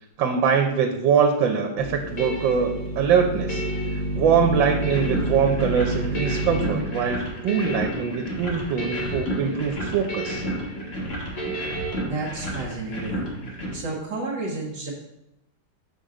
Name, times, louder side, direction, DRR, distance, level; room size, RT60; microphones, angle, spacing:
voice 1, 0.2-3.6 3.9-10.4, right 6 dB, 90° right, 5 dB, 1.4 m, -23 dB
sound 1, 1.7-12.0, right 1 dB, 55° left, 0.4 m, -36 dB
sound 2, 1.8-6.7, right 1 dB, 80° left, 3.2 m, -29 dB
sound 3, 4.8-13.7, equal, 35° left, 1.5 m, -32 dB
voice 2, 12.0-13.3 13.7-14.9, right 3 dB, 65° right, -2 dB, 1.7 m, -31 dB
6.7 x 5.8 x 3.7 m, 0.89 s
omnidirectional pair, 2.0 m